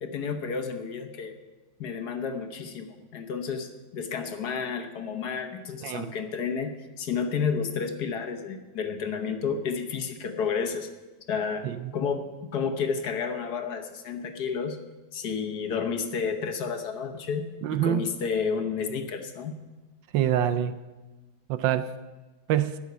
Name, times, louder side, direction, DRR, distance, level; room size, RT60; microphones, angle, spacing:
voice 1, 0.0-1.3 1.8-10.9 11.3-11.7 11.9-14.8 15.1-19.6, left 6 dB, 55° left, 6 dB, 1.4 m, -31 dB
voice 2, 17.6-18.1 20.1-20.7 21.5-21.9 22.5-22.8, right 10 dB, 75° right, 13 dB, 1.2 m, -25 dB
12.0 x 6.1 x 9.4 m, 1.2 s
omnidirectional pair, 2.3 m